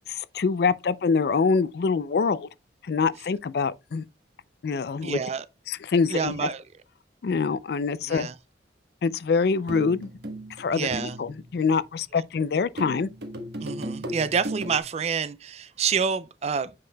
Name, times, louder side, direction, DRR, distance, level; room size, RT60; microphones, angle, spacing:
voice 1, 0.1-2.5 2.8-4.0 4.6-5.2 5.7-6.5 7.2-8.3 9.0-10.1 10.6-13.1, left 5 dB, 60° left, 0.4 m, -25 dB
voice 2, 5.0-5.4 6.1-6.6 8.1-8.3 10.7-11.2 13.6-16.7, right 6 dB, 35° right, 0.4 m, -28 dB
sound 1, 9.7-12.0 12.8-14.8, right 1 dB, 70° right, 1.3 m, -36 dB
7.6 x 5.8 x 2.2 m
head